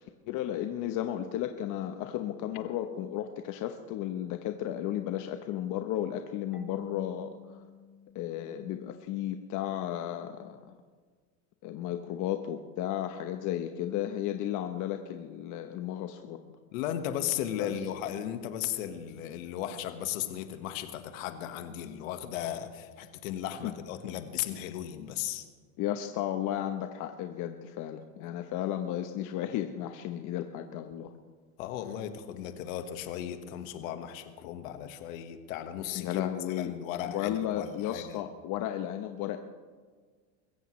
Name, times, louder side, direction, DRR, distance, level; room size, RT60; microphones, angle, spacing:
voice 1, 0.0-7.6 8.1-10.8 11.6-16.4 17.6-17.7 23.6-23.7 25.8-31.1 35.9-36.7 37.1-39.4, left 11 dB, 50° left, 7 dB, 1.0 m, -34 dB
Marimba xylophone / Wood, 6.5-9.3, left 2 dB, 5° right, 1.7 m, -50 dB
voice 2, 16.7-25.4 31.6-38.2, left 10 dB, 75° left, 8 dB, 1.5 m, -36 dB
22.5 x 15.5 x 3.2 m, 1.5 s
supercardioid pair, 120°, 40 cm